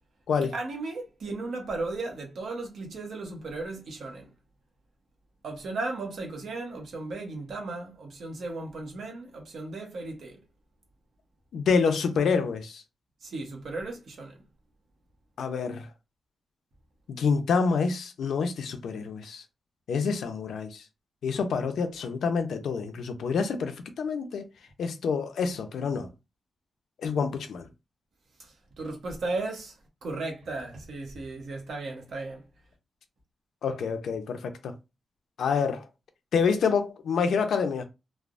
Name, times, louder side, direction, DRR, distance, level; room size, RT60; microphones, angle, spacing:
voice 1, 0.5-4.3 5.4-10.4 13.2-14.3 28.4-29.8 30.0-32.4, right 3 dB, 65° right, 0.9 m, -35 dB
voice 2, 11.5-12.8 15.4-15.9 17.1-19.4 19.9-20.8 21.2-24.5 24.8-26.1 27.0-27.6 33.6-34.7 35.4-35.9 36.3-37.8, left 5 dB, 80° left, 0.5 m, -27 dB
3.2 x 2.0 x 2.4 m
wide cardioid pair, 160°, 0 cm